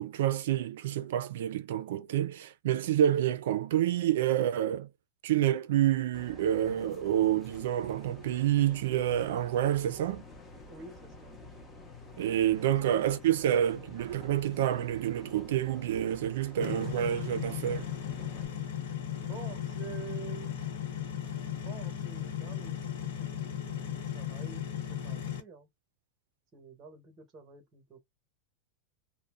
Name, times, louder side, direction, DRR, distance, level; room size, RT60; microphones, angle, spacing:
voice 1, 0.0-4.9 5.2-10.2 12.2-17.9, right 11 dB, 70° right, 0.3 m, -28 dB
sound 1, 6.1-18.4, left 2 dB, 10° left, 0.6 m, -49 dB
voice 2, 10.7-11.3 19.1-20.6 21.6-25.7 26.5-28.0, right 6 dB, 20° right, 0.9 m, -48 dB
sound 2, 16.6-25.4, left 9 dB, 75° left, 1.0 m, -36 dB
2.6 x 2.0 x 3.4 m
supercardioid pair, 175°, 0 cm